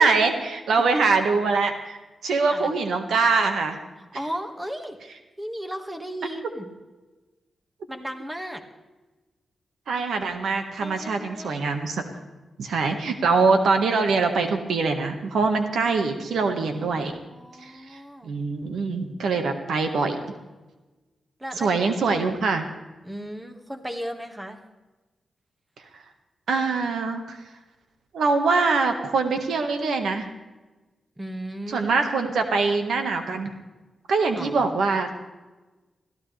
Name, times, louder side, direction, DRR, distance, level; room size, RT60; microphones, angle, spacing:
voice 1, 0.0-2.0 2.2-3.8 9.9-12.0 12.6-17.1 17.6-20.2 21.6-22.6 26.5-27.4 28.1-30.3 31.7-33.5 34.1-35.2, right 4 dB, 85° right, 5 dB, 1.7 m, -23 dB
voice 2, 4.0-5.0 5.4-6.7 7.9-8.6 10.8-11.7 16.7-18.4 21.4-22.2 23.0-24.6 31.2-31.9 34.3-34.8, equal, 15° right, 4 dB, 1.9 m, -36 dB
22.0 x 15.0 x 3.4 m, 1.2 s
cardioid pair, 85°, 0 cm